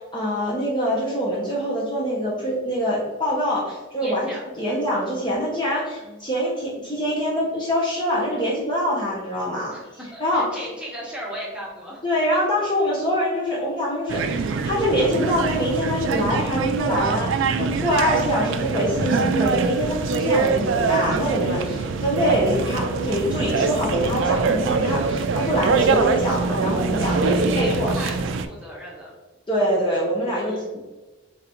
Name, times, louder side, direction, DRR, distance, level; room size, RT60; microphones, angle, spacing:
voice 1, 0.0-4.3 4.6-9.7 10.2-10.5 12.0-27.9 29.5-30.8, equal, 25° left, -5 dB, 0.7 m, -24 dB
voice 2, 4.0-4.9 6.0-6.2 9.7-12.0 12.3-12.7 27.2-29.1 30.3-30.7, equal, 5° right, -5 dB, 0.9 m, -37 dB
sound 1, 14.1-28.5, right 4 dB, 70° right, 0.3 m, -24 dB
3.7 x 3.2 x 2.9 m, 1.2 s
head